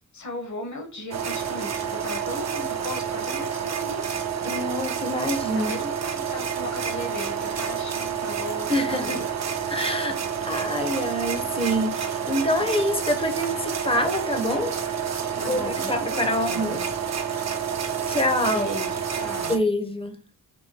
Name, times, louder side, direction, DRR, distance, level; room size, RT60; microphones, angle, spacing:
voice 1, 0.0-4.2 5.5-9.3 15.3-16.9 18.5-19.6, left 2 dB, 50° left, 1.2 m, -37 dB
sound 1, 1.1-19.6, right 7 dB, 45° right, 0.6 m, -29 dB
voice 2, 4.4-5.7 8.7-9.2 9.7-10.2 10.4-14.7 15.4-15.6 15.9-16.8 17.3-17.5 18.1-18.7 19.5-20.2, left 1 dB, 15° left, 0.8 m, -26 dB
4.4 x 2.6 x 2.8 m
cardioid pair, 70°, 37 cm